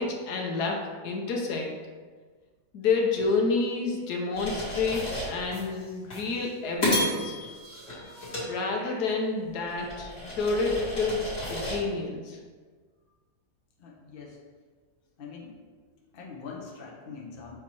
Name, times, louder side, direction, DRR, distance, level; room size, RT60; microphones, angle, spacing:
voice 1, 0.0-1.8 2.7-7.4 8.5-12.4, left 4 dB, 80° left, 0 dB, 1.4 m, -29 dB
sound 1, 4.4-5.6 6.1-6.3 6.8-9.2 9.7-11.8, equal, 65° left, 2.5 m, -32 dB
voice 2, 13.8-14.4 15.2-15.6 16.1-17.5, left 5 dB, 40° left, -2 dB, 1.0 m, -43 dB
7.2 x 2.9 x 4.6 m, 1.5 s
omnidirectional pair, 1.7 m